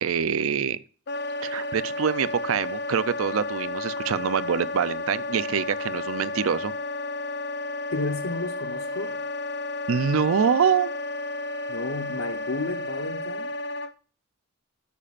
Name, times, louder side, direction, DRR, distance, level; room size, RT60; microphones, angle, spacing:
voice 1, 0.0-0.8 1.4-6.7 9.9-10.9, right 7 dB, 75° right, 0.5 m, -25 dB
Wind instrument woodwind instrument, 1.1-13.9, left 2 dB, 50° left, 0.6 m, -32 dB
voice 2, 7.9-9.2 11.7-13.5, left 3 dB, 85° left, 1.0 m, -32 dB
13.0 x 8.5 x 2.5 m
head